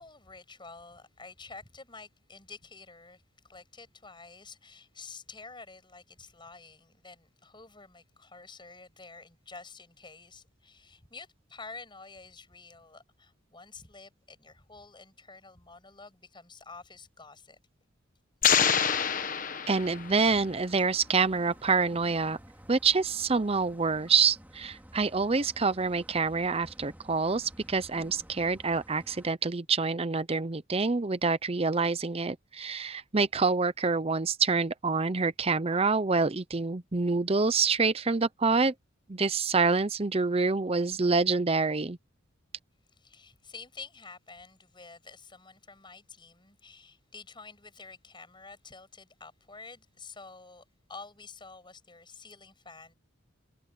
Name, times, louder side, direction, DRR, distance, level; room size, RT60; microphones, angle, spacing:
voice 1, 0.0-17.6 42.9-52.9, left 4 dB, 25° left, 7.7 m, -49 dB
sound 1, 18.4-20.3, left 7 dB, 40° left, 1.3 m, -26 dB
voice 2, 19.7-22.4 22.7-38.7 39.1-42.0, right 4 dB, 30° right, 0.7 m, -27 dB
sound 2, 19.8-29.3, equal, 10° right, 2.4 m, -52 dB
head